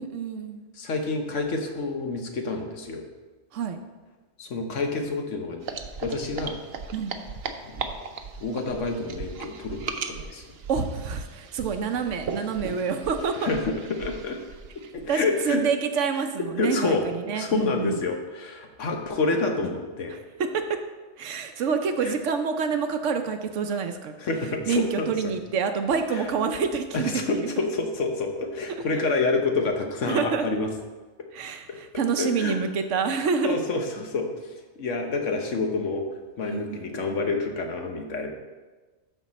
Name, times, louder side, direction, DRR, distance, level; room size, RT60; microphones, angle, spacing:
voice 1, 0.0-0.6 3.5-3.8 6.9-7.1 10.7-13.5 15.1-15.2 15.4-18.0 20.1-20.6 21.2-24.1 24.7-27.5 30.1-30.4 31.3-33.6 36.5-36.8, right 5 dB, 85° right, 7 dB, 1.1 m, -27 dB
voice 2, 0.8-3.1 4.4-5.7 6.0-6.6 7.6-7.8 8.4-10.5 13.4-14.4 14.9-15.6 16.6-17.0 17.3-20.1 22.0-22.1 24.2-25.3 26.1-26.2 26.9-30.7 32.2-32.6 33.4-36.1 36.4-38.3, left 3 dB, 90° left, 3 dB, 1.4 m, -28 dB
sound 1, 5.6-15.1, right 5 dB, 60° right, 0.8 m, -37 dB
12.5 x 4.6 x 4.2 m, 1.3 s
omnidirectional pair, 1.2 m